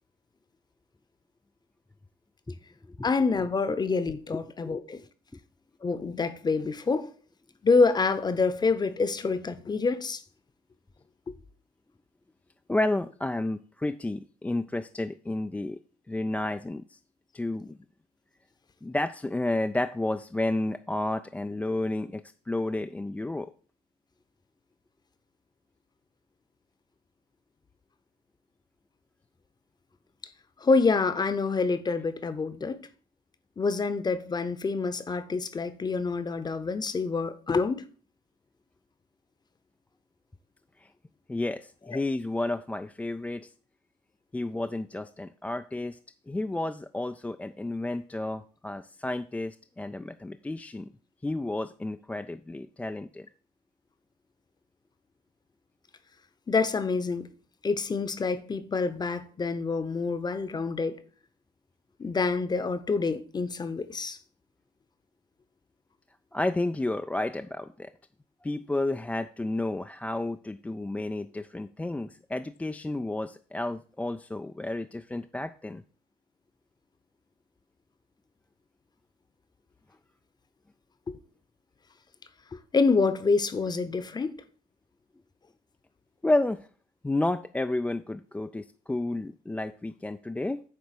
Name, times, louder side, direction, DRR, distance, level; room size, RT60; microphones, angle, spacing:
voice 1, 3.0-5.0 5.8-7.1 7.6-10.2 30.6-32.8 33.6-37.8 41.9-42.0 56.5-57.3 57.6-61.0 62.0-64.2 81.1-81.2 82.5-84.3, left 4 dB, 25° left, 0.8 m, -27 dB
voice 2, 4.3-4.8 12.7-15.8 16.1-17.0 17.3-17.8 18.8-23.5 40.8-40.9 41.3-43.5 44.3-46.0 46.3-50.9 51.2-53.3 66.3-67.9 68.4-75.8 86.2-86.7 87.0-90.6, left 2 dB, 10° left, 0.3 m, -31 dB
9.3 x 3.4 x 6.7 m
cardioid pair, 110°, 17 cm